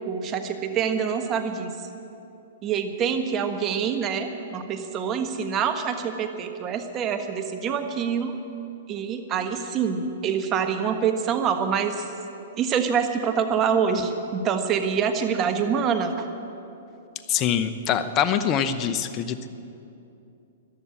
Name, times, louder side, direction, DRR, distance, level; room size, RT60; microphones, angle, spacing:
voice 1, 0.0-1.7 2.6-8.3 8.9-12.0 12.6-16.2, right 7 dB, 30° right, 6 dB, 1.4 m, -26 dB
voice 2, 17.3-19.5, left 8 dB, 30° left, 11 dB, 0.9 m, -24 dB
14.5 x 11.5 x 8.5 m, 2.8 s
hypercardioid pair, 125°, 0 cm